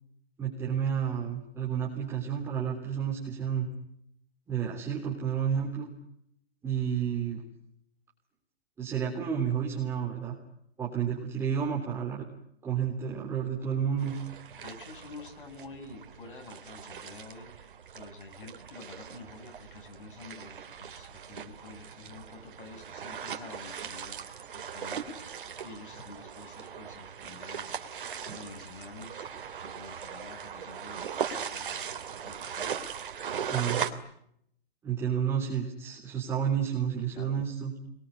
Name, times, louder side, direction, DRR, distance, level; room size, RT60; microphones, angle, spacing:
voice 1, 0.4-3.7 4.5-5.9 6.6-7.4 8.8-10.3 10.8-12.2 12.6-14.2 33.5-33.8 34.8-37.7, right 8 dB, 10° right, -5 dB, 3.6 m, -30 dB
sound 1, 14.0-33.9, right 7 dB, 55° right, 3.1 m, -39 dB
voice 2, 14.6-17.7 17.9-24.2 24.5-25.1 25.6-27.8 28.3-29.3 29.7-31.9 32.2-32.7 37.1-37.4, left 3 dB, 55° left, 5 dB, 7.8 m, -48 dB
27.0 x 22.5 x 9.9 m, 0.74 s
hypercardioid pair, 160°, 31 cm